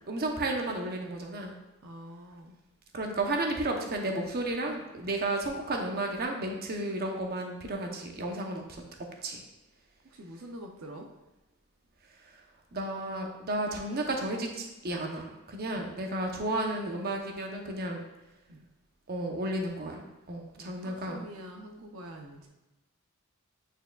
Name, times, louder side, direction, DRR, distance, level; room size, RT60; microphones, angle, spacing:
voice 1, 0.1-1.5 2.9-8.8 9.2-9.4 12.7-18.0 19.1-21.3, right 2 dB, 45° right, 2 dB, 0.8 m, -33 dB
voice 2, 1.8-2.6 10.0-11.1 15.7-16.1 18.5-18.7 20.6-22.5, right 1 dB, 75° right, 2 dB, 0.7 m, -46 dB
8.9 x 4.7 x 2.3 m, 1.0 s
head